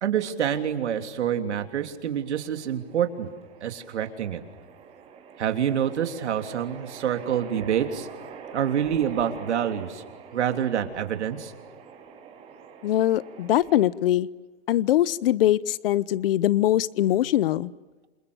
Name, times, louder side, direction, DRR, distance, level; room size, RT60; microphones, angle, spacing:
voice 1, 0.0-3.3 3.6-4.4 5.4-8.1 8.5-10.0 10.3-11.5, right 9 dB, 90° right, 7 dB, 3.4 m, -27 dB
sound 1, 1.7-13.8, right 6 dB, 20° right, 4.7 m, -45 dB
voice 2, 12.8-14.3 14.7-17.7, left 13 dB, 55° left, 20 dB, 0.9 m, -22 dB
28.5 x 27.0 x 7.0 m, 1.2 s
supercardioid pair, 170°, 33 cm